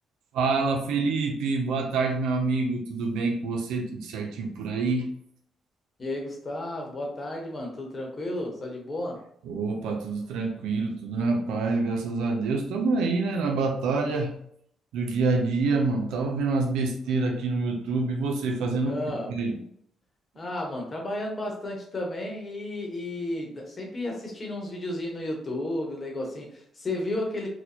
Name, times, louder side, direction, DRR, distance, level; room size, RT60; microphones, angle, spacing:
voice 1, 0.3-5.1 9.5-14.4 14.9-19.0 19.3-19.6, right 3 dB, 90° right, 2 dB, 0.4 m, -26 dB
voice 2, 6.0-9.2 18.8-19.3 20.4-27.5, left 1 dB, 35° left, 0 dB, 1.0 m, -33 dB
4.1 x 2.2 x 2.8 m, 0.68 s
cardioid pair, 90°, 0 cm